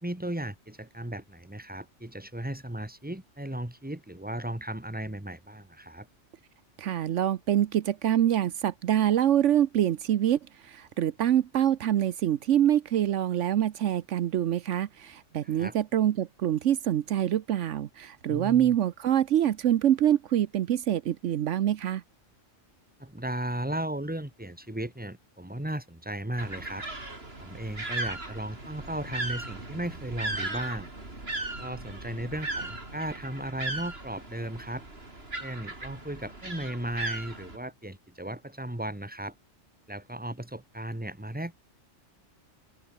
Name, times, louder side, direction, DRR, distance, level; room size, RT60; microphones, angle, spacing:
voice 1, 0.0-6.1 15.4-15.8 18.3-18.8 23.0-26.8 27.4-30.9 31.6-34.9 35.4-39.3 39.9-41.7, right 1 dB, 5° right, 2.2 m, -36 dB
voice 2, 6.8-22.0, right 11 dB, 75° right, 1.0 m, -25 dB
sound 1, 26.4-37.6, right 2 dB, 55° right, 4.8 m, -37 dB
open air
omnidirectional pair, 1.3 m